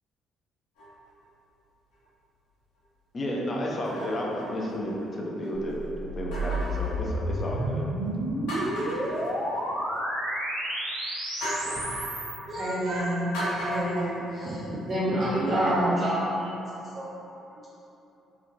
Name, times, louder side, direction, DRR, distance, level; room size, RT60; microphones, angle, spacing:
sound 1, 0.8-1.2 1.9-2.0 3.7-5.2 6.3-7.7 8.1-8.2 8.5-10.0 11.4-12.2 13.3-14.9 15.4-15.5, right 1 dB, 80° left, 1.1 m, -36 dB
voice 1, 3.1-7.9, equal, 40° left, -2 dB, 0.5 m, -32 dB
sound 2, 5.7-12.4, right 1 dB, 80° right, 0.6 m, -31 dB
voice 2, 12.5-14.5 14.9-16.0, right 1 dB, 50° right, -9 dB, 1.1 m, -28 dB
voice 3, 14.4-14.8 15.0-16.5 16.8-17.1, right 1 dB, 35° right, -7 dB, 0.4 m, -30 dB
3.1 x 2.4 x 2.5 m, 2.9 s
hypercardioid pair, 50°, 0 cm